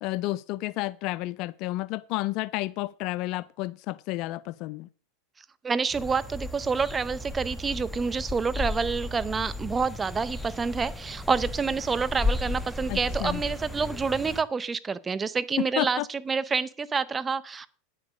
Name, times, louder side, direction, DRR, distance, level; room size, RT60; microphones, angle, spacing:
voice 1, 0.0-4.9 12.9-13.4 15.6-16.1, left 18 dB, 50° left, 0.4 m, -31 dB
voice 2, 5.6-17.7, right 5 dB, 20° right, 0.7 m, -28 dB
sound 1, 5.9-14.4, left 2 dB, ahead, 1.1 m, -34 dB
9.3 x 6.5 x 6.2 m
hypercardioid pair, 90°, 0 cm